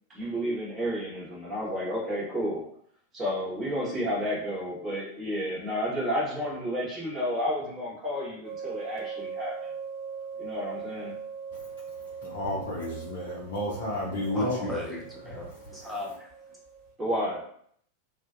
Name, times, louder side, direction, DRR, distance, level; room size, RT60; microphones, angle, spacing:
voice 1, 0.1-2.6 3.1-9.6 10.4-11.1 17.0-17.4, equal, 20° right, -6 dB, 1.3 m, -31 dB
sound 1, 8.4-16.9, right 6 dB, 15° left, 1.3 m, -40 dB
voice 2, 12.2-14.7, left 1 dB, 55° left, -6 dB, 0.6 m, -31 dB
voice 3, 14.3-16.3, left 2 dB, 5° right, -3 dB, 0.8 m, -35 dB
2.5 x 2.4 x 2.5 m, 0.65 s
figure-of-eight pair, 90°, 0 cm